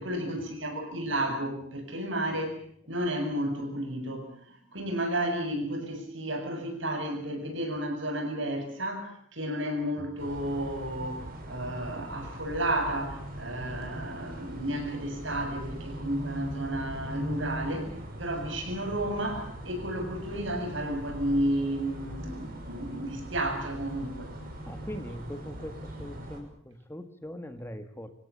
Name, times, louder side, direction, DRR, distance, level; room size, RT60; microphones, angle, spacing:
voice 1, 0.0-2.6 2.9-17.9 18.2-24.3, right 1 dB, 70° right, 5 dB, 7.5 m, -32 dB
sound 1, 10.2-26.4, right 1 dB, 45° right, 6.5 m, -40 dB
voice 2, 24.7-28.1, equal, 10° left, 9 dB, 1.7 m, -41 dB
26.5 x 17.0 x 8.5 m, 0.64 s
head